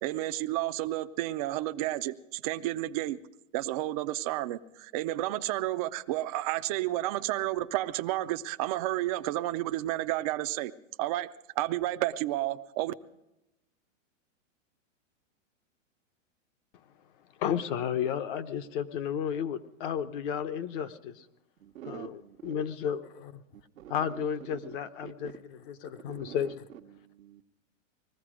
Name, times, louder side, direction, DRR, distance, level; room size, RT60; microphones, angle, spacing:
voice 1, 0.0-3.2 3.5-10.7 11.0-12.9, right 16 dB, 30° right, 0.5 m, -31 dB
voice 2, 17.4-21.3 21.9-23.4 23.9-26.7, left 8 dB, 40° left, 0.9 m, -33 dB
voice 3, 21.6-22.6 23.5-24.3 24.6-24.8 25.0-25.4 26.1-27.4, right 11 dB, 85° right, 1.1 m, -47 dB
20.0 x 14.5 x 5.0 m
hypercardioid pair, 150°, 39 cm